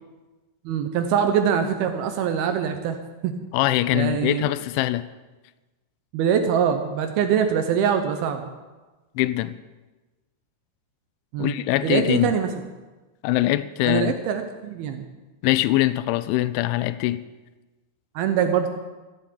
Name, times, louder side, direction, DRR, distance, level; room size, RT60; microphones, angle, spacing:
voice 1, 0.7-3.0 3.2-3.3 3.9-4.5 6.1-8.5 11.3-11.5 11.8-12.5 13.9-15.0 18.2-18.7, right 8 dB, 80° right, 7 dB, 2.3 m, -23 dB
voice 2, 3.5-5.1 9.2-9.6 11.4-12.3 13.2-14.1 15.4-17.2, left 16 dB, 85° left, 15 dB, 3.0 m, -22 dB
14.5 x 8.0 x 8.5 m, 1.2 s
omnidirectional pair, 5.3 m